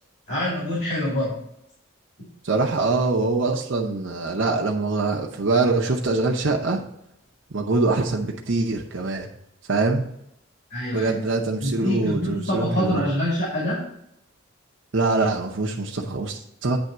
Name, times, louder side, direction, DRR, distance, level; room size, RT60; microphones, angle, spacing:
voice 1, 0.3-1.4 10.7-11.1 11.6-13.8, left 1 dB, 55° left, -5 dB, 2.2 m, -25 dB
voice 2, 2.4-6.8 7.5-9.3 9.7-10.1 10.9-13.0 14.9-16.8, right 3 dB, 60° right, -1 dB, 0.8 m, -24 dB
8.9 x 3.5 x 6.6 m, 0.78 s
head